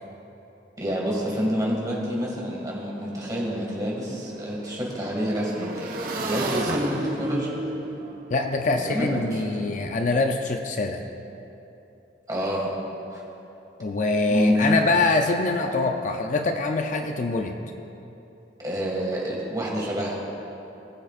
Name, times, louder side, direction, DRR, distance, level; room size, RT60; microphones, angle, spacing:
voice 1, 0.8-5.9 6.1-7.5 8.8-9.7 12.3-12.7 13.1-13.2 14.3-14.8 18.6-20.2, equal, 20° right, -3 dB, 1.9 m, -27 dB
Motorcycle / Engine, 2.2-2.3 2.6-9.7, right 2 dB, 55° right, 1.0 m, -34 dB
voice 2, 8.3-11.0 13.8-17.6, left 3 dB, 45° left, 5 dB, 0.5 m, -24 dB
20.0 x 7.3 x 2.5 m, 3.0 s
head